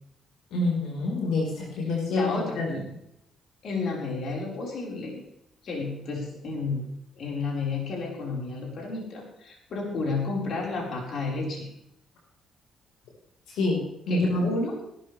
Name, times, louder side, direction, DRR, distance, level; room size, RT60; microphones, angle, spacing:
voice 1, 0.5-2.2 2.6-2.8 13.5-13.8 14.1-14.5, left 2 dB, 85° left, -2 dB, 4.9 m, -26 dB
voice 2, 2.1-2.6 3.6-5.2 5.6-6.8 7.1-11.7 14.1-14.8, left 3 dB, 60° left, -2 dB, 5.1 m, -31 dB
18.0 x 12.5 x 3.5 m, 0.78 s
cardioid pair, 90°, 0 cm